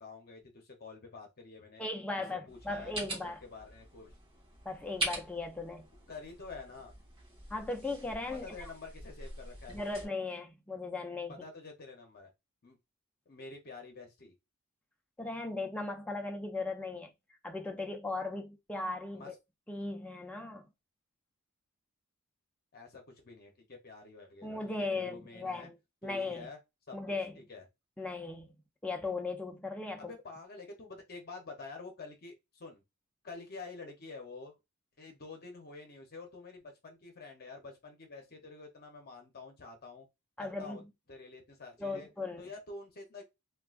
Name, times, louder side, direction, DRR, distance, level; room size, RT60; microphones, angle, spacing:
voice 1, 0.0-1.8 2.3-4.1 6.1-7.0 8.4-10.0 11.4-12.3 12.6-12.8 13.3-14.3 19.1-19.4 22.7-25.7 26.0-26.6 26.9-27.6 30.0-32.8 33.2-34.6 35.0-40.1 40.4-40.8 41.1-42.1 42.4-43.2, left 3 dB, 45° left, 0.8 m, -48 dB
voice 2, 1.8-3.4 4.7-5.9 7.5-8.7 9.7-11.4 15.2-17.1 17.4-19.3 19.7-20.7 24.4-25.8 26.0-26.5 26.9-27.3 28.0-28.5 28.8-30.1 40.4-40.8 41.8-42.5, left 3 dB, 5° left, 0.4 m, -37 dB
sound 1, 2.5-10.1, right 1 dB, 25° right, 1.3 m, -43 dB
3.6 x 2.3 x 2.4 m
head